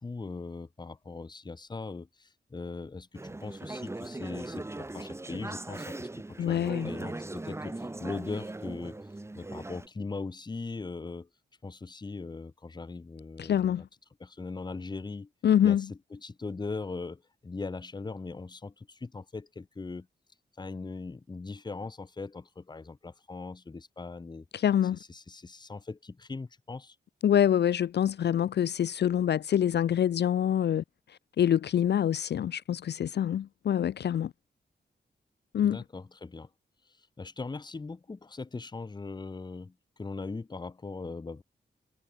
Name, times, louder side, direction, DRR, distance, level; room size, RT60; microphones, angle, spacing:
voice 1, 0.0-9.0 9.3-11.3 11.6-13.8 14.2-15.3 15.6-20.1 20.6-24.5 24.9-27.0 35.6-36.5 36.9-41.4, left 3 dB, 25° left, 0.7 m, -40 dB
Conversation / Chatter, 3.2-9.9, right 2 dB, 15° right, 0.8 m, -39 dB
voice 2, 6.4-6.9 13.4-13.8 15.4-15.9 24.5-25.0 27.2-30.8 31.4-34.3 35.5-35.8, left 10 dB, 65° left, 0.4 m, -25 dB
wide cardioid pair, 105°, 19 cm